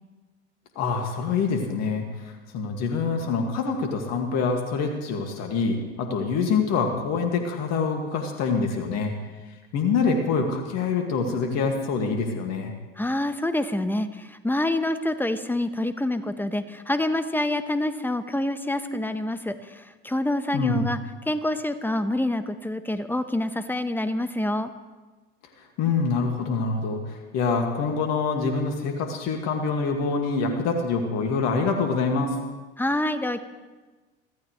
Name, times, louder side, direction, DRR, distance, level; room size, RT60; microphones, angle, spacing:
voice 1, 0.8-9.1 9.7-12.7 20.5-20.9 25.6-32.4, left 4 dB, 50° left, 3 dB, 2.3 m, -25 dB
voice 2, 13.0-21.0 21.3-24.7 32.8-33.4, left 1 dB, 5° left, 10 dB, 1.2 m, -27 dB
24.5 x 15.5 x 3.3 m, 1.2 s
hypercardioid pair, 75°, 34 cm